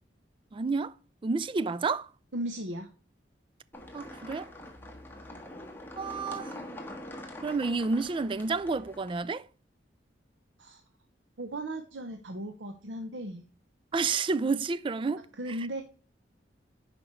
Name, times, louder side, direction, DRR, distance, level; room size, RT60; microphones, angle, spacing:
voice 1, 0.5-0.9 1.2-2.1 3.9-4.5 6.0-6.6 7.4-9.5 13.9-15.3, right 4 dB, 30° right, 0.3 m, -30 dB
voice 2, 2.3-2.9 10.6-10.8 11.4-13.4 15.4-15.8, right 1 dB, 85° right, 0.8 m, -36 dB
sound 1, 3.7-9.2, left 1 dB, 10° left, 1.5 m, -44 dB
10.5 x 5.0 x 3.2 m
head